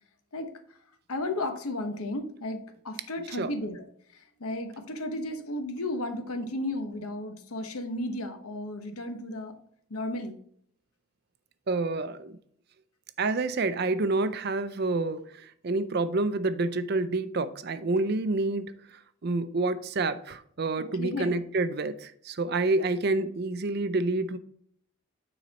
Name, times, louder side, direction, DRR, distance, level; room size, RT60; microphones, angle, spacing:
voice 1, 1.1-3.8 4.1-9.5 9.9-10.4 20.8-21.3, left 1 dB, 85° left, 7 dB, 1.0 m, -34 dB
voice 2, 11.7-12.4 13.2-24.4, right 3 dB, 45° right, 13 dB, 0.5 m, -28 dB
9.2 x 4.0 x 4.1 m, 0.65 s
head